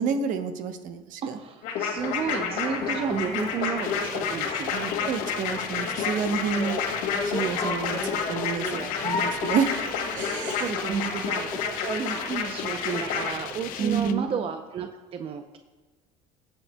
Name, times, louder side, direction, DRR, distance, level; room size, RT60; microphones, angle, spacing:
voice 1, 0.0-1.4 4.7-6.8 7.2-8.0 8.3-9.9 10.1-10.6 10.9-11.1 13.8-14.3, right 6 dB, 60° right, 8 dB, 0.9 m, -29 dB
voice 2, 1.2-4.7 8.6-8.9 10.5-15.6, right 6 dB, 35° right, 5 dB, 0.6 m, -32 dB
sound 1, 1.6-13.3, left 6 dB, 80° left, 2.1 m, -30 dB
sound 2, 2.0-14.1, left 3 dB, 25° left, 1.5 m, -37 dB
sound 3, 3.8-14.1, left 11 dB, 65° left, 0.6 m, -40 dB
20.5 x 7.3 x 2.2 m, 1.2 s
cardioid pair, 130°, 16 cm